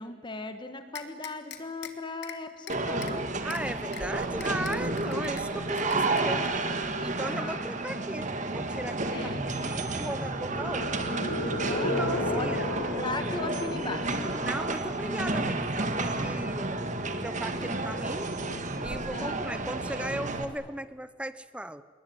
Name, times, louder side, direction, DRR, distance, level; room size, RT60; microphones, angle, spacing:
voice 1, 0.0-3.2 5.5-5.7 7.3-7.8 9.1-9.4 11.6-14.2 19.1-19.4, left 2 dB, 25° left, 8 dB, 1.7 m, -38 dB
sound 1, 0.9-1.9 2.2-2.4 2.7-3.1 3.5-3.6 3.9-4.0 4.4-5.4 5.8-6.5, left 9 dB, 55° left, 2.3 m, -42 dB
sound 2, 2.7-20.5, right 2 dB, 35° right, 1.9 m, -31 dB
voice 2, 3.4-6.4 7.0-11.1 11.8-12.7 14.4-16.7 17.2-18.4 18.8-21.8, right 1 dB, 5° right, 14 dB, 0.7 m, -37 dB
sound 3, 10.3-15.3, left 2 dB, 80° left, 3.7 m, -34 dB
28.0 x 21.5 x 9.6 m, 1.5 s
head